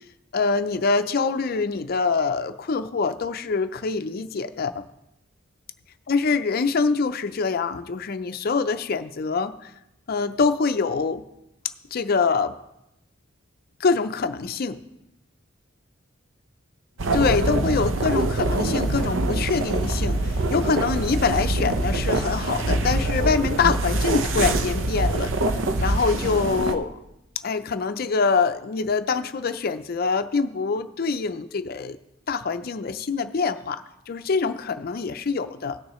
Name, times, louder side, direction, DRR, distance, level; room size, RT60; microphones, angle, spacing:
voice 1, 0.3-4.8 6.1-9.7 10.1-11.3 11.9-12.6 13.8-14.8 17.1-25.3 25.8-27.0 27.4-32.0 32.3-35.8, left 4 dB, 50° left, 11 dB, 0.5 m, -25 dB
sound 1, 17.0-26.7, right 2 dB, 70° right, 0.7 m, -24 dB
17.5 x 6.5 x 3.1 m, 0.89 s
head